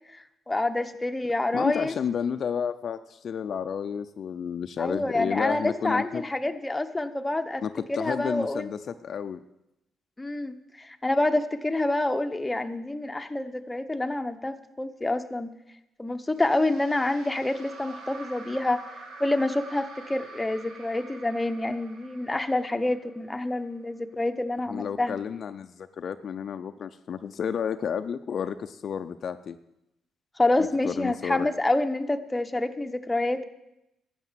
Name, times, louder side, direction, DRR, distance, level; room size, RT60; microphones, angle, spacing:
voice 1, 0.1-1.9 4.8-7.6 8.0-8.7 10.2-15.5 16.0-18.8 19.2-25.2 30.4-33.4, left 2 dB, 15° left, 6 dB, 0.9 m, -27 dB
voice 2, 1.5-6.2 7.6-9.4 24.7-29.6 30.6-31.5, left 7 dB, 55° left, 9 dB, 0.5 m, -31 dB
sound 1, 16.4-23.6, right 3 dB, 80° right, 2.1 m, -46 dB
12.5 x 8.1 x 7.5 m, 0.89 s
cardioid pair, 90°, 0 cm